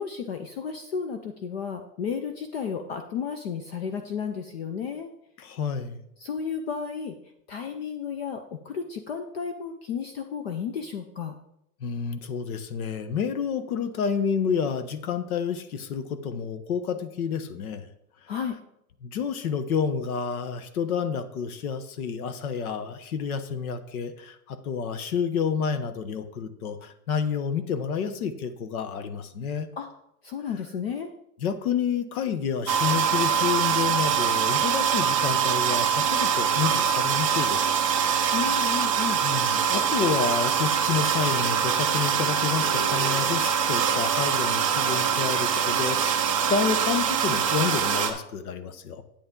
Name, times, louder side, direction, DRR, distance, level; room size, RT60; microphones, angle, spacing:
voice 1, 0.0-5.1 6.2-7.2 7.5-11.4 18.3-18.6 29.8-29.9 30.2-31.1 38.3-39.2, left 6 dB, 40° left, 7 dB, 0.5 m, -33 dB
voice 2, 5.4-6.0 11.8-17.9 19.0-29.7 31.4-37.7 38.1-38.4 39.2-49.0, left 6 dB, 60° left, 11 dB, 1.0 m, -29 dB
sound 1, 32.7-48.1, right 7 dB, 25° right, 0.4 m, -24 dB
Crowd, 32.8-46.5, right 2 dB, 15° left, 2.5 m, -45 dB
8.6 x 8.1 x 3.7 m, 0.80 s
supercardioid pair, 165°, 49 cm